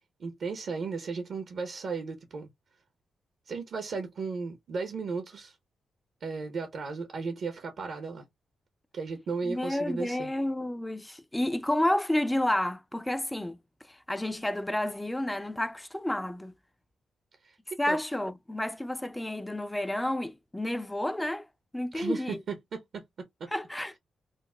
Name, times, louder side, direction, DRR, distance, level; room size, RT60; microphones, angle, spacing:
voice 1, 0.2-2.5 3.5-5.6 6.2-8.2 8.9-10.3 17.4-17.6 17.9-18.0 21.9-23.0 23.4-23.5, right 4 dB, 70° right, 0.7 m, -35 dB
voice 2, 9.4-13.6 14.1-16.5 17.8-21.5 21.7-22.4 23.5-23.9, left 1 dB, 10° left, 0.4 m, -30 dB
3.9 x 2.0 x 2.2 m
cardioid pair, 65°, 0 cm